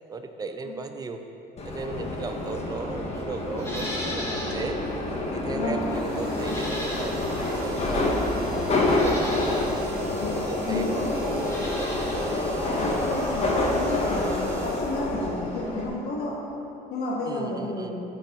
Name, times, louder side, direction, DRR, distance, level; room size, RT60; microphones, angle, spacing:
voice 1, 0.1-1.2 1.6-4.8 5.3-8.1 8.6-9.6 10.2-12.1 12.9-13.1 17.3-17.9, right 3 dB, 20° right, 6 dB, 0.6 m, -36 dB
Subway metro underground, 1.6-15.9, left 2 dB, 40° left, 1.3 m, -27 dB
Livestock farm animals working animals, 3.6-4.6 5.0-5.1 6.4-7.4 8.2-8.3 8.9-9.7 11.3-12.3 12.5-12.6, equal, 15° left, 2.1 m, -36 dB
sound 1, 5.8-15.8, right 2 dB, 60° right, 2.0 m, -43 dB
voice 2, 10.1-10.4 10.6-11.2 12.7-16.4 16.9-18.0, left 2 dB, 70° left, -3 dB, 1.1 m, -31 dB
13.0 x 4.6 x 4.4 m, 2.9 s
cardioid pair, 110°, 17 cm